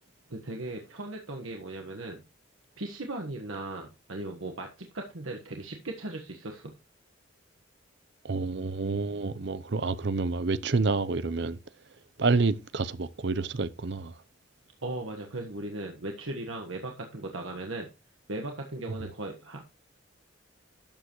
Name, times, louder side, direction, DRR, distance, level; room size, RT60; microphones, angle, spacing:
voice 1, 0.3-2.2 2.8-6.7 14.8-17.9 18.3-19.6, right 2 dB, 85° right, 1.4 m, -37 dB
voice 2, 8.2-11.6 12.2-14.1, right 3 dB, 55° right, 0.6 m, -28 dB
12.0 x 7.7 x 3.1 m
head